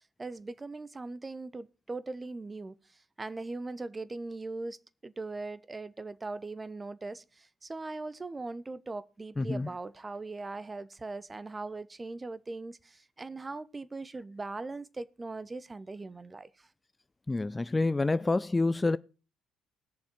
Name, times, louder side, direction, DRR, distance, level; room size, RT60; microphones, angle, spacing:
voice 1, 0.2-2.8 3.2-16.5, right 3 dB, 25° right, 1.0 m, -40 dB
voice 2, 9.4-9.7 17.3-19.0, left 3 dB, 20° left, 0.5 m, -27 dB
20.0 x 7.0 x 4.6 m
hypercardioid pair, 55°, 0 cm